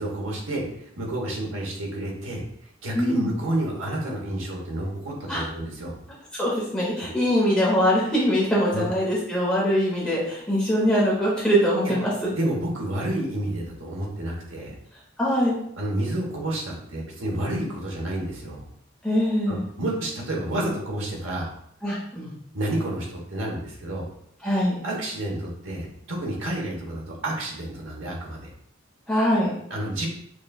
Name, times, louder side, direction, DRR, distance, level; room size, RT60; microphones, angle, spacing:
voice 1, 0.0-5.9 7.0-7.1 8.7-8.9 11.8-12.0 12.3-14.7 15.8-18.6 19.5-21.5 22.5-24.1 24.8-28.4 29.7-30.1, right 1 dB, 85° right, -1 dB, 1.0 m, -30 dB
voice 2, 2.9-3.3 5.3-5.5 6.3-12.1 15.2-15.6 19.0-19.6 21.8-22.3 24.4-24.7 29.1-29.5, equal, 5° left, -7 dB, 0.9 m, -22 dB
6.0 x 2.3 x 2.3 m, 0.70 s
head